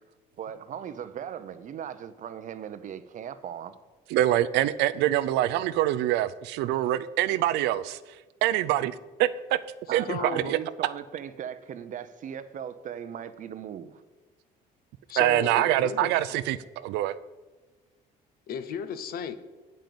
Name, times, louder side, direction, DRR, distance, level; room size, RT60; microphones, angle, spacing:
voice 1, 0.4-3.8 9.9-14.0, right 9 dB, 50° right, 0.7 m, -38 dB
voice 2, 4.1-8.0 8.4-9.6 9.9-10.6 15.2-17.2, right 13 dB, 85° right, 0.4 m, -25 dB
voice 3, 10.1-10.6 15.1-16.1 18.5-19.4, left 7 dB, 60° left, 0.8 m, -35 dB
8.8 x 5.3 x 7.7 m
cardioid pair, 110°, 17 cm